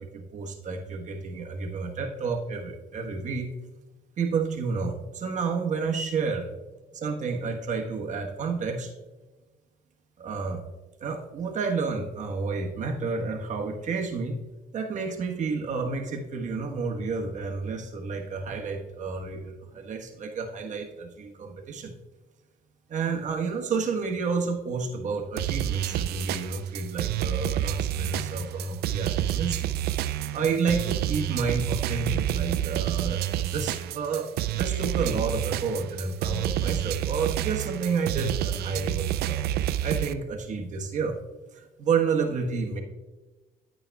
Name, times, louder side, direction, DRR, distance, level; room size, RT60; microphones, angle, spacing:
voice 1, 0.0-3.5 4.2-6.5 6.9-8.9 10.2-10.6 11.0-14.4 14.7-21.9 22.9-29.7 30.3-39.5 39.8-41.2 41.5-42.8, right 5 dB, 45° right, 1 dB, 1.3 m, -30 dB
sound 1, 25.4-40.1, right 12 dB, 70° right, 0.4 m, -29 dB
11.0 x 8.7 x 2.3 m, 1.2 s
cardioid pair, 110°, 17 cm